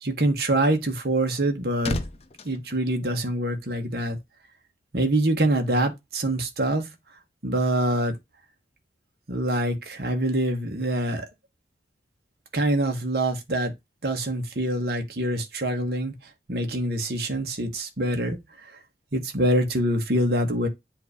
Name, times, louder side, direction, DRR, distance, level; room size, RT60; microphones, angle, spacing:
voice 1, 0.0-2.0 2.4-4.2 4.9-6.9 7.4-8.1 9.3-11.3 12.5-13.7 14.0-16.1 16.5-18.8 19.1-20.7, right 1 dB, 60° right, 1.2 m, -25 dB
sound 1, 1.2-3.8 4.0-4.3, left 2 dB, 35° left, 0.6 m, -36 dB
7.7 x 2.7 x 4.8 m
head